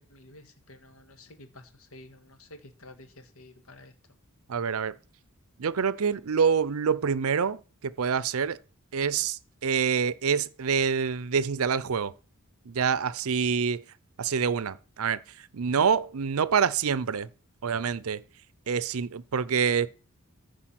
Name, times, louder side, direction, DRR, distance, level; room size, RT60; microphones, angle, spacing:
voice 1, 0.0-3.9, left 2 dB, 65° left, 1.7 m, -51 dB
voice 2, 4.5-4.9 5.6-8.6 8.9-12.1 12.7-13.8 14.2-15.2 15.5-17.3 17.6-18.2 18.7-19.9, right 6 dB, 75° right, 0.5 m, -26 dB
14.5 x 4.9 x 5.9 m
head